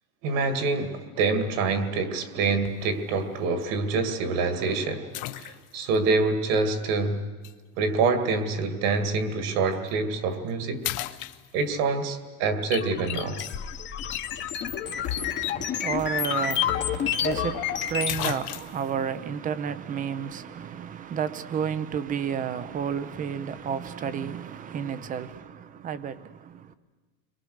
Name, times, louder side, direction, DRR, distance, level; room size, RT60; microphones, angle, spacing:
voice 1, 0.2-7.2 7.8-10.8 11.5-13.4, right 4 dB, 50° right, 2.3 m, -26 dB
sound 1, 2.6-3.0 3.6-3.7 5.1-6.0 7.4-7.6 9.7-9.9 10.3-10.5 10.8-11.9 16.0-16.1 16.4-16.5 17.6-17.7 18.1-18.9, left 15 dB, 45° left, 0.9 m, -34 dB
sound 2, 12.7-18.2, left 9 dB, 25° left, 1.1 m, -29 dB
voice 2, 14.8-26.7, right 7 dB, 20° right, 0.7 m, -32 dB
30.0 x 23.0 x 6.6 m
supercardioid pair, 155°, 44 cm